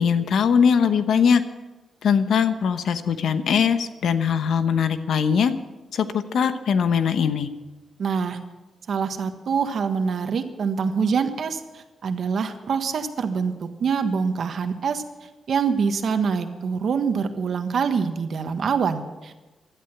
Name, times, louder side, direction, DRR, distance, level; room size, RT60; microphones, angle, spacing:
voice 1, 0.0-1.4 2.0-5.5 5.9-7.5, left 7 dB, 80° left, 10 dB, 1.0 m, -21 dB
voice 2, 8.0-8.4 8.9-19.3, right 6 dB, 70° right, 8 dB, 1.4 m, -25 dB
16.5 x 12.0 x 6.0 m, 1.1 s
cardioid pair, 70°, 0 cm